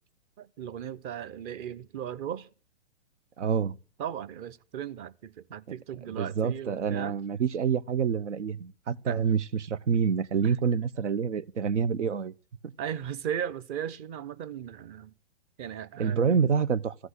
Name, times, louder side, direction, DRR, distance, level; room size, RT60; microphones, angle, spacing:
voice 1, 0.4-2.5 4.0-7.2 9.1-9.2 10.4-10.5 12.8-15.1 15.6-16.3, right 9 dB, 35° right, 0.8 m, -37 dB
voice 2, 3.4-3.8 6.2-12.3 16.0-16.9, right 6 dB, 90° right, 0.9 m, -27 dB
14.5 x 8.0 x 8.0 m
hypercardioid pair, 130°, 35 cm